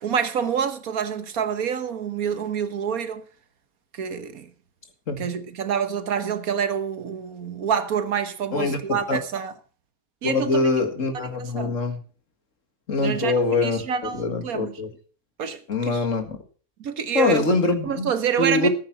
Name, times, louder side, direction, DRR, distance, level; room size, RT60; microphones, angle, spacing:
voice 1, 0.0-3.2 4.0-4.5 5.2-9.5 10.2-10.7 11.3-11.8 13.0-13.3 13.6-14.8 15.4-16.0 16.8-17.4 17.8-18.7, right 7 dB, 80° right, 1.6 m, -27 dB
voice 2, 8.5-9.2 10.2-12.0 12.9-13.8 14.1-14.9 15.7-16.4 17.1-18.1 18.4-18.7, left 3 dB, 60° left, 2.3 m, -23 dB
14.0 x 8.8 x 5.8 m
omnidirectional pair, 1.5 m